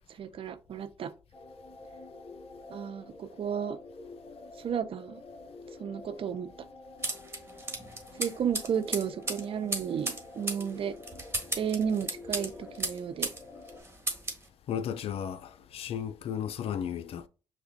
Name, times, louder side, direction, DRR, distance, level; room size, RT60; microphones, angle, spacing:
voice 1, 0.2-1.1 2.7-3.8 4.6-5.2 5.8-6.5 8.2-11.0 11.6-13.3, right 8 dB, 55° right, 0.5 m, -33 dB
sound 1, 1.3-13.8, left 3 dB, 30° left, 0.9 m, -48 dB
sound 2, 7.0-13.4 13.7-14.4, right 2 dB, 20° right, 1.4 m, -35 dB
voice 2, 14.7-17.3, left 8 dB, 60° left, 0.4 m, -34 dB
5.9 x 2.2 x 2.6 m
hypercardioid pair, 50°, 11 cm